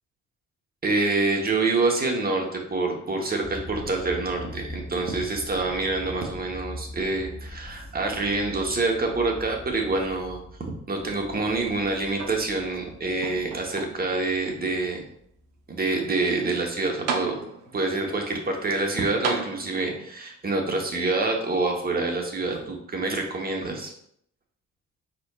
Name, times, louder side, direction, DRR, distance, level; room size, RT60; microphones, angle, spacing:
voice 1, 0.8-10.4 10.9-15.0 15.7-17.4 17.7-23.9, right 3 dB, 30° right, 2 dB, 1.1 m, -26 dB
sound 1, 3.4-15.6, left 1 dB, 20° left, 1.6 m, -43 dB
sound 2, 12.1-12.8 13.2-14.2 14.9-15.0 16.6-16.7 17.1-17.8 19.2-20.1 21.2-21.3, right 5 dB, 85° right, 0.7 m, -33 dB
4.5 x 4.3 x 2.4 m, 0.70 s
cardioid pair, 90°, 30 cm